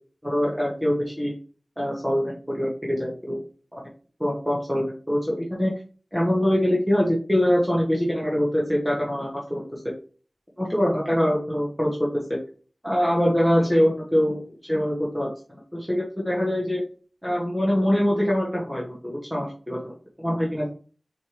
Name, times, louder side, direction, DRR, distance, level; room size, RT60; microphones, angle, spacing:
voice 1, 0.2-1.3 1.8-3.4 3.7-3.8 4.2-5.8 6.1-9.9 10.6-12.4 12.8-14.4 14.7-15.3 15.7-16.8 17.2-20.7, equal, ahead, -4 dB, 1.2 m, -24 dB
4.4 x 3.2 x 3.0 m, 0.39 s
wide cardioid pair, 40°, 0 cm